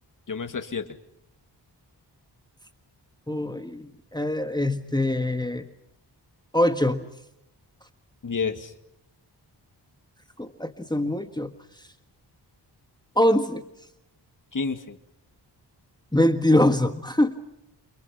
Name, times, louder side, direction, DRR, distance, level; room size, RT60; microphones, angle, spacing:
voice 1, 0.3-0.9 8.2-8.7 14.5-15.0, left 5 dB, 45° left, 7 dB, 2.4 m, -30 dB
voice 2, 3.3-5.7 6.5-7.1 10.4-11.5 13.2-13.6 16.1-17.3, left 1 dB, 10° left, 7 dB, 1.6 m, -23 dB
29.5 x 26.0 x 5.9 m, 0.81 s
wide cardioid pair, 95°, 43 cm